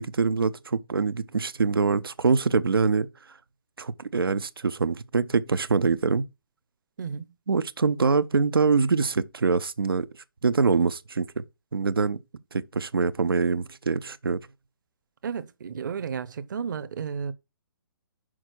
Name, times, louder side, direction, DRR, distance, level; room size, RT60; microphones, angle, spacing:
voice 1, 0.0-3.1 3.8-6.3 7.5-10.1 10.4-11.4 11.7-12.2 12.5-14.4, right 4 dB, 80° right, 0.6 m, -24 dB
voice 2, 7.0-7.3 15.2-17.3, right 6 dB, 60° right, 0.8 m, -33 dB
6.2 x 4.5 x 6.1 m
figure-of-eight pair, 130°, 12 cm